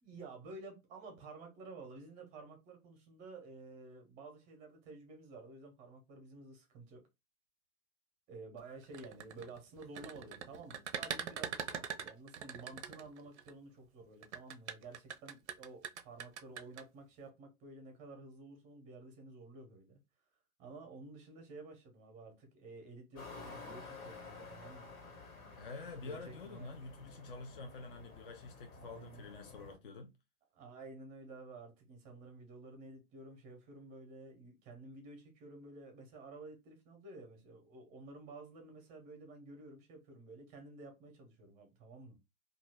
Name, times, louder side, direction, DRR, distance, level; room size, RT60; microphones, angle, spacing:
voice 1, 0.0-7.0 8.3-20.0 20.6-24.9 25.9-26.7 28.8-29.3 30.5-42.2, right 3 dB, 15° right, 0.7 m, -52 dB
sound 1, 8.8-13.5 14.2-16.8, right 8 dB, 50° right, 0.5 m, -42 dB
sound 2, 23.1-29.8, left 4 dB, 65° left, 1.5 m, -52 dB
voice 2, 25.6-30.1, left 3 dB, 40° left, 0.4 m, -48 dB
2.8 x 2.4 x 3.2 m
figure-of-eight pair, 110°, 44 cm